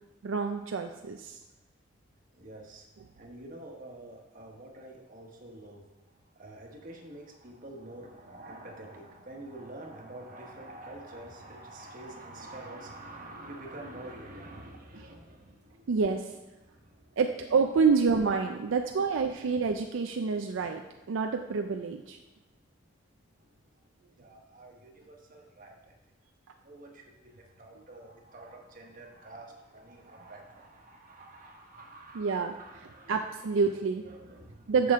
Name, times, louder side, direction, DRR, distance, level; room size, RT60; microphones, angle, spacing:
voice 1, 0.2-1.4 15.9-16.4 17.2-20.8 21.1-22.2 32.1-32.5 33.1-34.0 34.7-34.9, right 5 dB, 75° right, 5 dB, 0.4 m, -27 dB
voice 2, 2.3-2.9 3.2-16.0 16.6-17.2 19.9-21.0 22.3-22.4 22.8-22.9 23.3-26.0 26.6-33.5 34.0-34.9, right 1 dB, 45° right, 1 dB, 1.2 m, -48 dB
7.6 x 6.0 x 3.6 m, 1.0 s
head